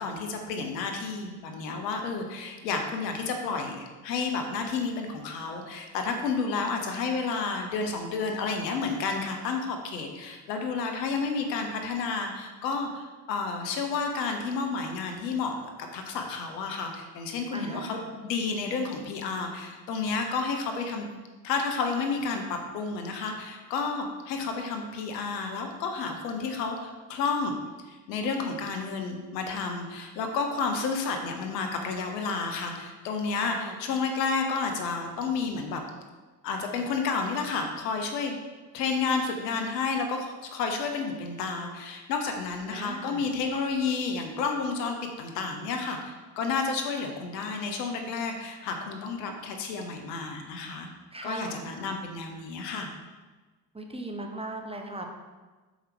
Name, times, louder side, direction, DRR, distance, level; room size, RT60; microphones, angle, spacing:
voice 1, 0.0-15.5 15.9-21.1 21.4-27.6 27.8-35.8 36.4-38.4 38.7-50.9 51.2-52.9, left 4 dB, 85° left, 4 dB, 0.9 m, -31 dB
voice 2, 17.5-18.1 33.4-33.7 42.7-43.2 51.1-51.6 53.7-55.1, right 2 dB, 10° right, 2 dB, 1.1 m, -38 dB
6.4 x 5.1 x 4.7 m, 1.3 s
hypercardioid pair, 45°, 49 cm